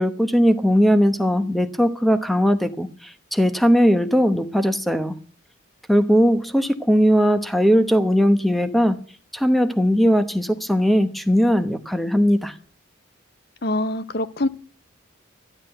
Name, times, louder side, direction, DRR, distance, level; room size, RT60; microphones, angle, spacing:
voice 1, 0.0-2.9 3.3-5.1 5.9-9.0 9.3-12.5, equal, ahead, 0.9 m, -19 dB
voice 2, 13.6-14.5, left 1 dB, 50° left, 0.7 m, -24 dB
13.5 x 11.5 x 7.8 m
head